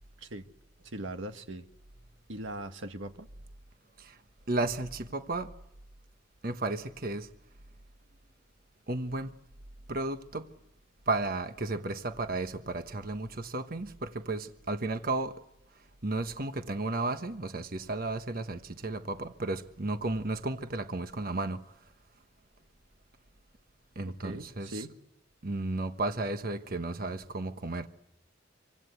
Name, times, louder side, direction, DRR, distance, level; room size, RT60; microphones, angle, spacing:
voice 1, 0.8-1.6 2.3-3.3 24.0-24.9, right 1 dB, 90° right, 1.7 m, -40 dB
voice 2, 4.5-5.5 6.4-7.3 8.9-9.3 9.9-10.5 11.1-15.4 16.0-21.7 24.0-24.9 25.4-27.9, right 2 dB, 50° right, 1.2 m, -33 dB
26.5 x 25.0 x 8.2 m
head